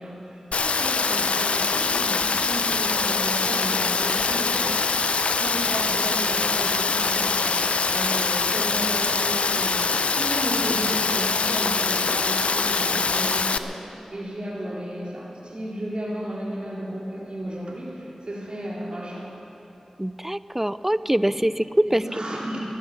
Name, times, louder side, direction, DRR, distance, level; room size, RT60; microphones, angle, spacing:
voice 1, 0.0-4.8 5.4-19.3 21.3-21.5 21.9-22.6, right 1 dB, 55° right, -5 dB, 3.8 m, -33 dB
Rain, 0.5-13.6, left 4 dB, 90° left, 0.5 m, -23 dB
voice 2, 20.0-22.0, right 1 dB, 15° right, 15 dB, 0.5 m, -23 dB
16.0 x 11.5 x 7.5 m, 2.9 s
cardioid pair, 40°, 2 cm